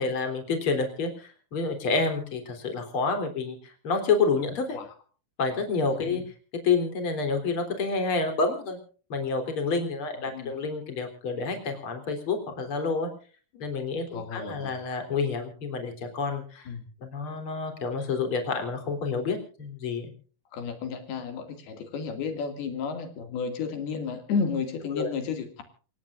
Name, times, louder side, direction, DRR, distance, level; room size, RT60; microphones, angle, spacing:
voice 1, 0.0-4.7 5.4-6.2 6.6-8.8 9.1-13.1 13.6-16.7 17.0-20.1 24.9-25.1, left 4 dB, 35° left, 6 dB, 4.1 m, -28 dB
voice 2, 5.9-6.2 10.2-10.5 13.5-13.6 14.1-14.7 16.7-16.9 20.5-25.6, left 5 dB, 75° left, 6 dB, 4.2 m, -32 dB
27.5 x 17.0 x 2.5 m, 0.40 s
omnidirectional pair, 4.5 m